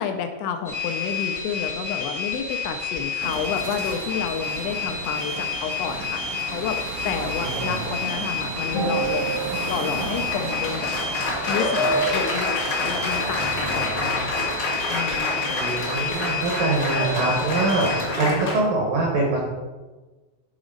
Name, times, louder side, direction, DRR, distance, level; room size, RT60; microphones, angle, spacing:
voice 1, 0.0-9.4 9.7-10.9 11.5-12.5 12.8-14.5 14.9-15.5, left 7 dB, 80° left, 5 dB, 2.5 m, -30 dB
sound 1, 0.6-18.1, left 5 dB, 40° left, 0.8 m, -30 dB
sound 2, 3.2-18.3, right 4 dB, 90° right, 2.0 m, -36 dB
voice 2, 7.4-7.8 15.6-19.4, right 2 dB, 70° right, -1 dB, 2.1 m, -24 dB
Applause, 8.7-18.6, left 1 dB, 60° left, 1.3 m, -27 dB
9.7 x 4.1 x 5.1 m, 1.2 s
omnidirectional pair, 5.2 m